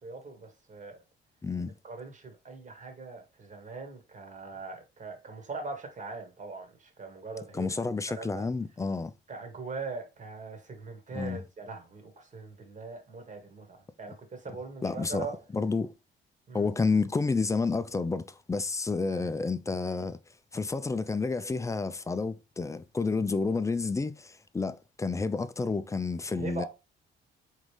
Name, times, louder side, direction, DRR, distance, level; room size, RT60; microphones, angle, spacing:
voice 1, 0.0-1.0 1.8-8.4 9.3-15.4 16.5-16.7 19.1-19.3 26.3-26.7, right 3 dB, 40° right, 1.4 m, -41 dB
voice 2, 1.4-1.7 7.5-9.1 11.1-11.4 14.8-15.3 15.5-15.9 16.5-20.2 20.5-26.6, left 4 dB, 15° left, 0.4 m, -30 dB
3.8 x 3.1 x 3.2 m
cardioid pair, 90°, 20 cm